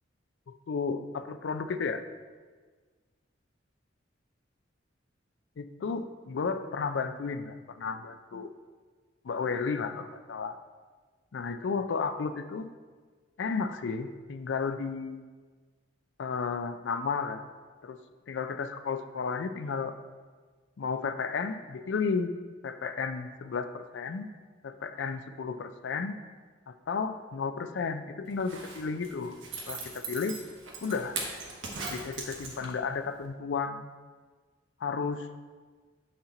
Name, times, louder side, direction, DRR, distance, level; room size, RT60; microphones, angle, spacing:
voice 1, 0.7-2.0 5.6-8.5 9.2-10.6 11.3-12.7 13.4-15.2 16.2-17.4 17.8-18.0 18.3-19.9 20.8-22.3 22.6-24.3 24.6-26.2 26.7-29.4 29.7-30.4 30.8-31.2 31.9-33.9 34.8-35.3, left 5 dB, 70° left, 10 dB, 0.4 m, -33 dB
Zipper (clothing), 28.3-32.9 33.2-33.3, right 3 dB, 85° right, 1.1 m, -39 dB
7.1 x 4.3 x 3.8 m, 1.4 s
head